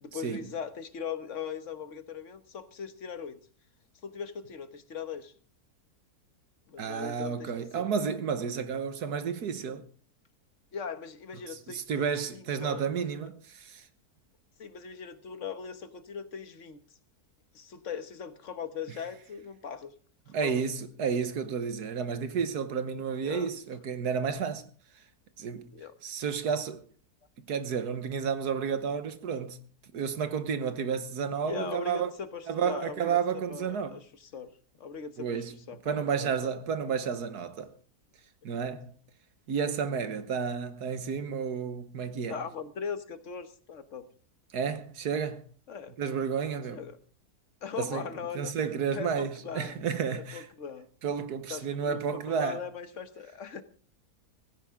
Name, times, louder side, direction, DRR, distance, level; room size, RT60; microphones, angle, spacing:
voice 1, 0.0-3.4 4.0-5.3 6.7-7.9 10.7-12.8 14.6-16.8 17.5-19.9 20.4-20.6 23.2-23.5 25.7-25.9 31.4-33.2 33.5-34.5 34.8-36.5 38.6-38.7 42.3-44.1 45.7-45.9 46.7-47.0 47.6-48.5 48.9-49.7 50.1-50.9 51.5-53.6, left 6 dB, 50° left, 1.5 m, -40 dB
voice 2, 6.8-9.9 11.5-13.9 20.3-24.7 25.4-25.7 26.0-26.8 27.5-29.6 29.9-32.1 32.5-34.0 35.2-35.6 35.9-37.7 38.4-38.9 39.5-42.4 44.5-45.4 46.0-46.8 47.8-50.5 51.0-52.6, right 6 dB, 80° right, 1.7 m, -31 dB
17.0 x 16.0 x 3.7 m
omnidirectional pair, 1.7 m